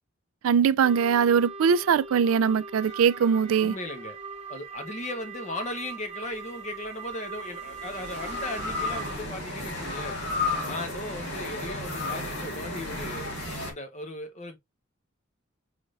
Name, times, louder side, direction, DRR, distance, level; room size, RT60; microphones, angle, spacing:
voice 1, 0.4-3.7, right 7 dB, 85° right, 0.3 m, -22 dB
sound 1, 0.8-9.1, right 5 dB, 30° right, 0.6 m, -41 dB
sound 2, 2.8-4.3 6.2-13.7, left 3 dB, 50° left, 2.2 m, -35 dB
voice 2, 3.6-4.2 4.5-10.2 10.7-13.3 13.7-14.6, left 1 dB, 35° left, 1.2 m, -37 dB
sound 3, 8.6-13.7, right 2 dB, 45° right, 1.0 m, -40 dB
5.1 x 3.9 x 2.5 m
head